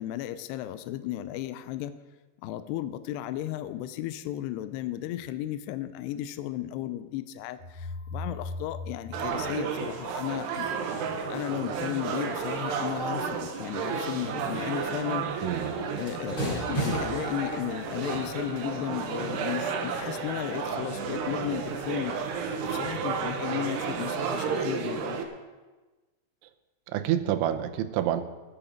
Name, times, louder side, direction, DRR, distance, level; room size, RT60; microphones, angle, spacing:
voice 1, 0.0-1.9 2.4-15.2 16.0-22.2 22.6-25.2, left 13 dB, 80° left, 11 dB, 2.5 m, -34 dB
sound 1, 7.6-10.5, left 2 dB, 40° left, 4.7 m, -39 dB
sound 2, 9.1-25.2, right 6 dB, 70° right, 3.2 m, -32 dB
voice 2, 15.4-15.8 26.9-28.2, right 11 dB, 85° right, 9 dB, 3.2 m, -28 dB
sound 3, 16.3-22.7, equal, 25° left, 4.4 m, -38 dB
19.0 x 10.0 x 5.1 m, 1.2 s
omnidirectional pair, 5.3 m